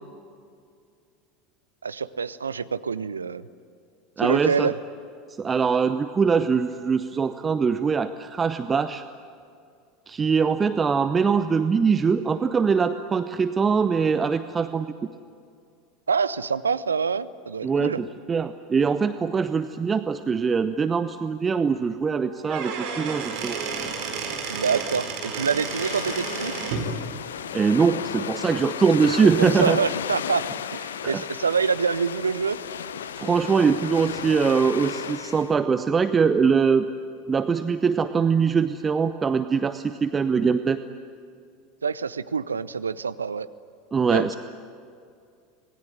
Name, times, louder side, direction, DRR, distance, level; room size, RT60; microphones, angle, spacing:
voice 1, 1.8-3.5 4.2-4.7 16.1-18.0 24.5-26.5 29.4-30.4 30.7-32.6 41.8-43.5 44.1-44.4, right 5 dB, 75° right, 16 dB, 0.7 m, -26 dB
voice 2, 4.2-4.7 5.4-9.0 10.1-14.9 17.6-23.6 27.5-29.8 31.0-31.2 33.1-36.9 37.3-40.8 43.9-44.4, right 5 dB, 20° right, 11 dB, 0.8 m, -22 dB
Squeak / Wood, 22.3-26.9, right 5 dB, 55° right, 4.8 m, -31 dB
sound 1, 25.5-35.5, left 8 dB, 70° left, 0.7 m, -33 dB
26.5 x 20.0 x 9.9 m, 2.3 s
figure-of-eight pair, 80°, 0 cm